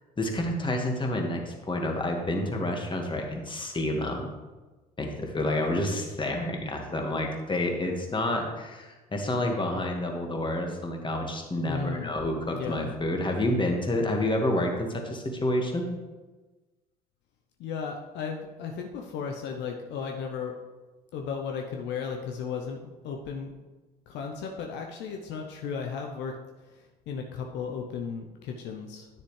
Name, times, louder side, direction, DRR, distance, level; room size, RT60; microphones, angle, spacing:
voice 1, 0.2-4.3 5.0-15.9, left 1 dB, 25° left, 2 dB, 1.8 m, -29 dB
voice 2, 11.6-12.1 12.5-12.9 17.6-20.6 21.1-23.5 24.1-26.3 26.7-29.1, left 6 dB, 65° left, 2 dB, 0.8 m, -35 dB
9.9 x 6.6 x 3.3 m, 1.2 s
hypercardioid pair, 55°, 20 cm